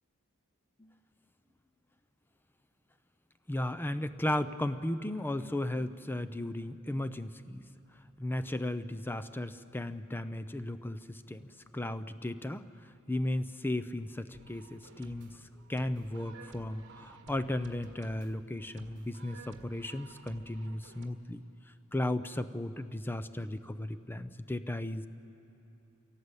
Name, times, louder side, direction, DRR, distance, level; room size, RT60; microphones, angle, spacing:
voice 1, 3.5-7.6 8.2-11.4 11.7-12.6 13.1-15.3 15.7-21.4 21.9-25.1, left 1 dB, 10° left, 12 dB, 0.5 m, -35 dB
sound 1, 14.3-21.1, right 2 dB, 55° right, 1.7 m, -53 dB
25.5 x 17.0 x 8.1 m, 3.0 s
head